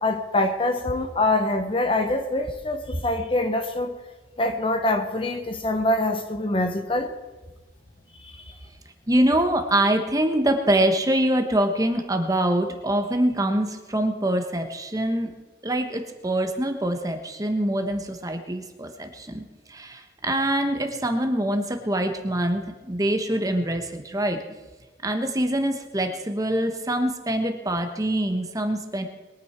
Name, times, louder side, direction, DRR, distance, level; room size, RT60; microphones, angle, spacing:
voice 1, 0.0-3.9 4.4-7.1 8.2-8.4, left 2 dB, 30° left, 7 dB, 1.0 m, -24 dB
voice 2, 9.1-15.3 15.6-24.4 25.0-29.0, right 1 dB, 20° right, 5 dB, 1.2 m, -24 dB
22.0 x 9.2 x 4.4 m, 1.2 s
head